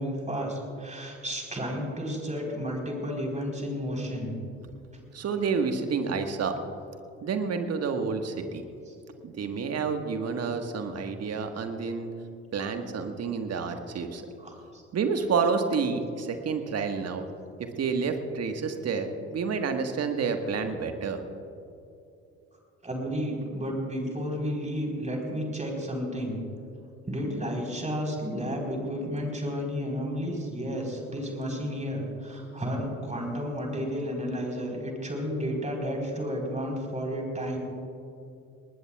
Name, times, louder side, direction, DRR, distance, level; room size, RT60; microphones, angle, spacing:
voice 1, 0.0-4.3 8.8-8.9 14.4-14.8 22.8-26.4 27.1-37.6, equal, 20° right, 0 dB, 4.2 m, -32 dB
voice 2, 5.1-6.6 7.2-8.6 9.2-12.1 12.5-14.2 14.9-17.2 17.8-21.2, right 5 dB, 45° right, 6 dB, 1.6 m, -29 dB
21.0 x 19.5 x 2.4 m, 2.7 s
figure-of-eight pair, 50°, 36 cm